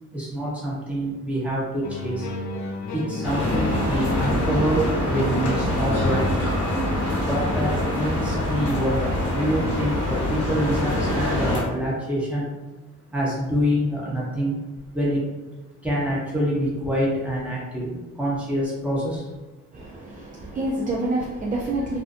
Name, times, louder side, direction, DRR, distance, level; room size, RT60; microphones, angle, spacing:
voice 1, 0.1-2.3 2.9-6.4 6.8-12.5 13.1-14.6 14.9-15.3 15.8-19.3, equal, 5° right, -6 dB, 1.0 m, -26 dB
sound 1, 1.8-6.8, left 3 dB, 70° left, 0.5 m, -33 dB
sound 2, 3.2-11.6, left 1 dB, 50° left, 1.0 m, -24 dB
voice 2, 19.7-22.0, right 2 dB, 25° right, -3 dB, 0.4 m, -27 dB
2.5 x 2.1 x 2.5 m, 1.1 s
cardioid pair, 90°, 30 cm